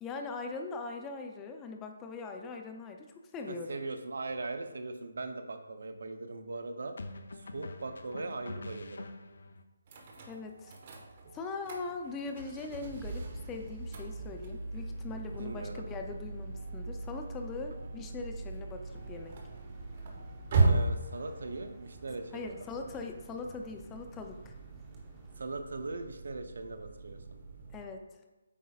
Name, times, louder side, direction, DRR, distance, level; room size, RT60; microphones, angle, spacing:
voice 1, 0.0-3.8 10.3-10.8 11.3-19.4 22.3-24.5 27.7-28.0, left 4 dB, 15° left, 4 dB, 0.5 m, -41 dB
voice 2, 3.5-7.0 7.3-9.1 15.4-15.9 20.6-22.5 22.8-22.9 25.4-27.2, right 3 dB, 70° right, 7 dB, 0.7 m, -40 dB
sound 1, 4.3-4.6 7.0-9.6, left 2 dB, 70° left, 0.5 m, -45 dB
sound 2, 9.9-27.8, right 3 dB, 40° right, 1.1 m, -37 dB
sound 3, 18.8-25.5, right 2 dB, 15° right, 1.0 m, -54 dB
8.4 x 5.3 x 2.4 m, 1.2 s
hypercardioid pair, 155°, 0 cm